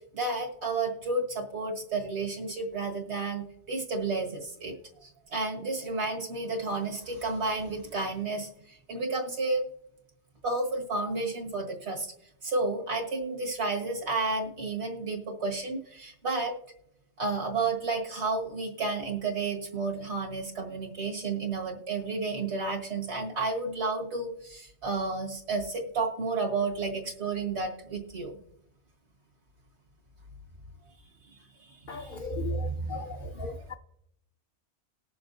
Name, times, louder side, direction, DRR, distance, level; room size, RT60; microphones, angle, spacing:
voice 1, 0.1-9.7 10.4-12.1 12.4-16.5 17.2-28.4 31.6-33.8, right 3 dB, 75° right, 1 dB, 1.9 m, -32 dB
voice 2, 31.9-33.7, left 6 dB, 60° left, 4 dB, 0.6 m, -39 dB
20.0 x 6.9 x 2.6 m, 0.77 s
omnidirectional pair, 1.1 m